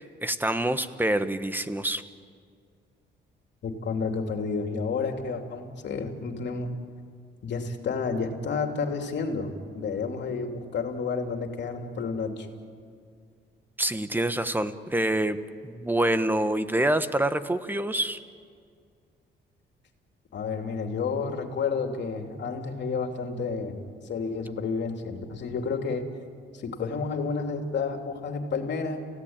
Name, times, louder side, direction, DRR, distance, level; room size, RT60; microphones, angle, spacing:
voice 1, 0.0-2.0 13.8-15.4 15.6-18.2, right 1 dB, 10° right, 11 dB, 1.3 m, -26 dB
voice 2, 3.6-6.7 7.4-12.5 20.3-26.1 26.5-29.0, left 4 dB, 60° left, 4 dB, 3.1 m, -30 dB
29.5 x 17.0 x 9.0 m, 2.2 s
cardioid pair, 90°, 20 cm